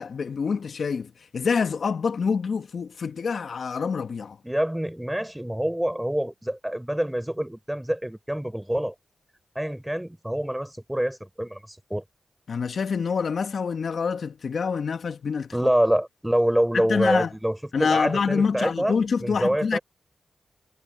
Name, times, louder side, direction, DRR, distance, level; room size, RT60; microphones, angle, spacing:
voice 1, 0.0-4.4 12.5-15.5 16.7-17.3 17.7-19.8, left 5 dB, 70° left, 1.7 m, -26 dB
voice 2, 4.4-8.9 9.5-11.6 11.9-12.0 15.5-19.8, right 1 dB, 5° right, 6.7 m, -26 dB
cardioid pair, 60°, 0 cm